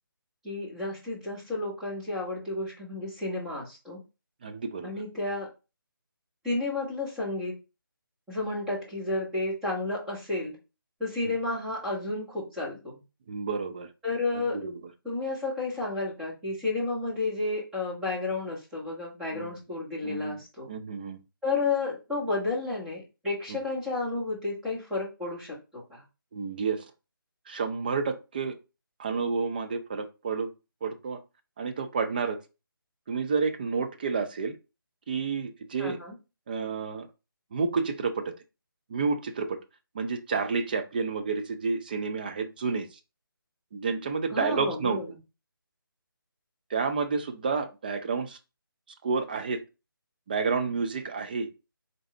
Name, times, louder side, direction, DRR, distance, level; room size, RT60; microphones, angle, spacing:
voice 1, 0.4-4.0 4.8-5.5 6.4-7.5 8.3-10.6 11.0-13.0 14.0-14.6 15.0-20.7 21.4-26.0 35.8-36.2 44.3-45.2, left 3 dB, 5° right, -6 dB, 1.2 m, -31 dB
voice 2, 4.4-4.9 11.2-11.3 13.3-13.9 14.3-14.7 19.3-19.5 20.0-20.4 20.7-21.2 23.5-23.6 26.3-26.8 27.5-28.5 29.0-30.5 30.8-31.2 31.6-32.4 33.1-34.5 35.1-36.0 36.5-37.1 37.5-38.2 38.9-39.6 39.9-42.9 43.7-45.0 46.7-48.4 49.0-49.6 50.3-51.5, right 5 dB, 25° right, 7 dB, 0.4 m, -30 dB
3.9 x 3.5 x 3.2 m, 0.29 s
figure-of-eight pair, 160°, 12 cm